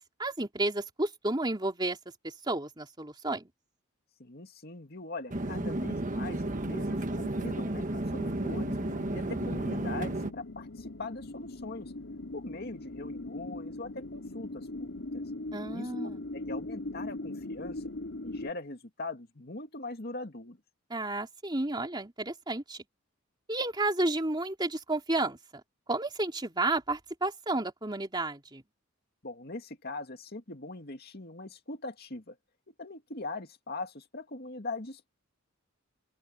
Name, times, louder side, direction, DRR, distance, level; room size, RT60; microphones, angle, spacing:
voice 1, 0.2-2.0 2.2-3.5 15.5-16.2 20.9-22.8 23.5-25.4 25.9-28.6, right 2 dB, 20° right, 3.1 m, -31 dB
voice 2, 4.2-8.8 9.1-11.9 12.3-15.2 15.7-15.9 16.3-17.8 18.2-20.6 29.2-32.4 32.7-35.1, left 2 dB, 50° left, 2.4 m, -41 dB
sound 1, 5.3-10.3, right 1 dB, 40° right, 1.5 m, -32 dB
sound 2, 8.4-18.5, left 2 dB, 70° left, 2.7 m, -40 dB
open air
head